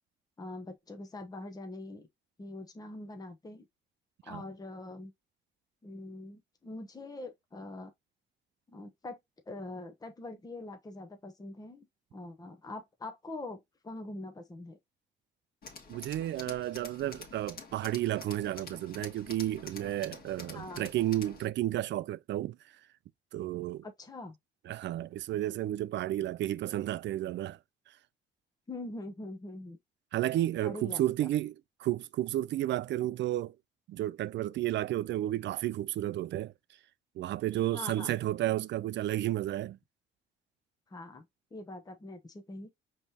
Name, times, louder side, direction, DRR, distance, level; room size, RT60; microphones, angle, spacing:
voice 1, 0.4-2.0 2.4-3.7 4.2-5.1 5.8-7.9 8.7-9.2 9.5-11.9 12.1-14.8 20.5-20.9 23.8-24.4 28.7-29.8 30.6-31.3 37.7-38.2 40.9-41.3 41.5-42.7, left 2 dB, 20° left, 0.9 m, -43 dB
Tools, 15.6-21.5, left 4 dB, 50° left, 1.6 m, -48 dB
voice 2, 15.9-22.6 23.3-23.9 24.7-27.6 30.1-33.6 33.9-36.5 37.2-39.8, right 14 dB, 65° right, 0.4 m, -32 dB
5.2 x 3.2 x 2.8 m
cardioid pair, 90°, 20 cm